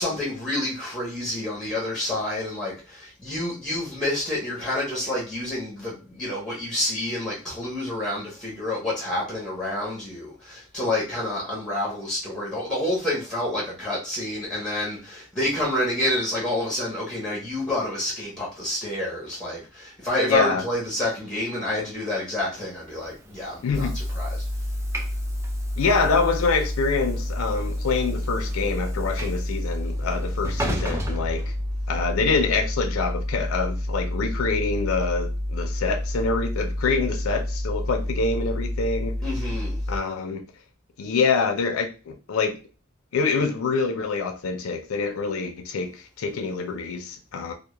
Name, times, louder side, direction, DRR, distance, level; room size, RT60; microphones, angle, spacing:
voice 1, 0.0-24.4 39.2-39.8, left 1 dB, 5° left, 0.7 m, -28 dB
voice 2, 20.3-20.6 23.6-23.9 25.8-31.5 31.9-39.1 39.9-40.4 41.0-42.6 43.1-47.5, left 4 dB, 80° left, 0.4 m, -26 dB
Train / Sliding door, 22.9-32.2, right 1 dB, 15° right, 0.3 m, -38 dB
sound 1, 23.7-40.0, left 1 dB, 75° right, 0.6 m, -29 dB
2.2 x 2.0 x 2.9 m
head